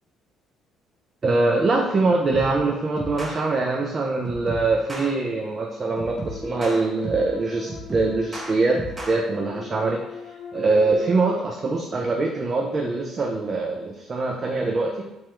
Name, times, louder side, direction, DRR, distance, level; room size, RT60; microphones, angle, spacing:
voice 1, 1.2-10.2 10.5-15.1, right 3 dB, 40° right, 1 dB, 0.4 m, -23 dB
sound 1, 2.3-2.6 3.0-3.4 4.2-5.1 6.0-7.3 7.7-9.2, right 2 dB, 25° right, 0.9 m, -34 dB
sound 2, 6.1-11.4, left 8 dB, 70° left, 0.4 m, -39 dB
2.8 x 2.2 x 3.1 m, 0.98 s
hypercardioid pair, 55°, 0 cm